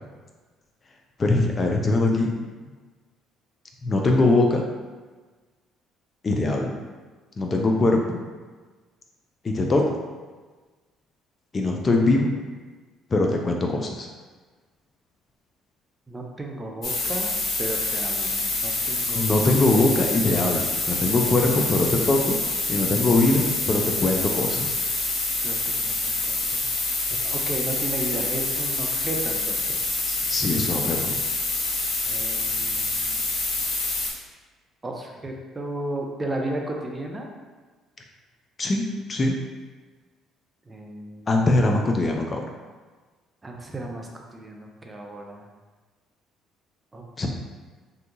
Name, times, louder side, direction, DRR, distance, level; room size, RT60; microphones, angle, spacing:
voice 1, 1.2-2.3 3.8-4.6 6.2-6.7 7.4-8.2 9.4-10.0 11.5-12.3 13.1-14.1 19.1-22.4 22.7-24.7 30.1-31.2 31.6-31.8 38.6-39.3 41.3-42.5 47.2-47.3, left 2 dB, 35° left, 1 dB, 0.4 m, -22 dB
voice 2, 7.8-8.1 16.1-17.3 17.6-19.3 25.4-26.7 27.2-29.8 32.1-33.2 34.8-37.3 40.7-41.4 43.4-45.4 46.9-47.3, right 1 dB, 20° right, 1 dB, 0.6 m, -34 dB
sound 1, 16.8-34.1, left 2 dB, 55° left, 0.8 m, -26 dB
2.8 x 2.3 x 3.8 m, 1.4 s
supercardioid pair, 70°, 0 cm